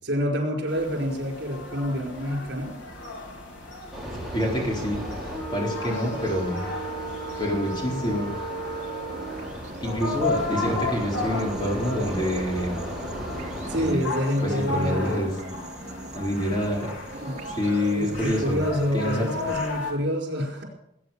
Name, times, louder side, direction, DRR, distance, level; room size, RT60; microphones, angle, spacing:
voice 1, 0.0-2.8 13.7-15.3 17.1-17.5 17.9-20.6, equal, 65° right, 2 dB, 4.9 m, -27 dB
sound 1, 0.7-19.9, left 3 dB, 80° left, 4.3 m, -35 dB
sound 2, 3.9-13.9, right 1 dB, ahead, 4.5 m, -35 dB
voice 2, 4.3-5.1 5.5-6.7 7.4-8.3 9.8-12.8 13.8-14.0 14.4-15.3 16.2-16.9 17.6-18.6 18.9-19.2, left 1 dB, 25° left, -1 dB, 4.2 m, -27 dB
sound 3, 8.5-19.7, right 2 dB, 35° right, 1.9 m, -40 dB
19.5 x 9.3 x 7.3 m, 0.80 s
head